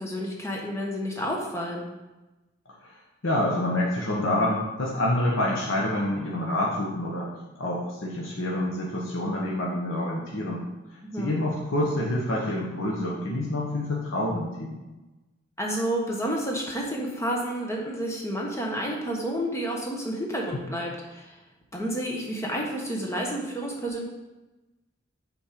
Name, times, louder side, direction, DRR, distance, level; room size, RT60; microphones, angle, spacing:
voice 1, 0.0-1.8 11.1-11.4 15.6-21.3 21.7-24.0, equal, 15° left, -1 dB, 1.2 m, -30 dB
voice 2, 3.2-7.3 7.6-10.6 11.2-14.8 20.5-20.6, left 1 dB, 85° left, -3 dB, 1.2 m, -27 dB
7.2 x 4.4 x 5.1 m, 1.1 s
head